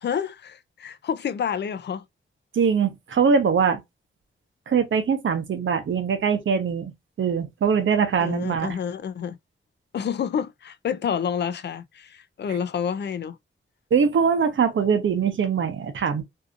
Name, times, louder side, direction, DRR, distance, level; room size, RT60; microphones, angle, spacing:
voice 1, 0.0-2.0 8.2-9.4 9.9-13.4, left 7 dB, 55° left, 0.4 m, -29 dB
voice 2, 2.5-3.8 4.7-6.9 7.2-8.8 13.9-16.2, right 6 dB, 70° right, 0.7 m, -22 dB
2.7 x 2.5 x 2.4 m
wide cardioid pair, 160°, 20 cm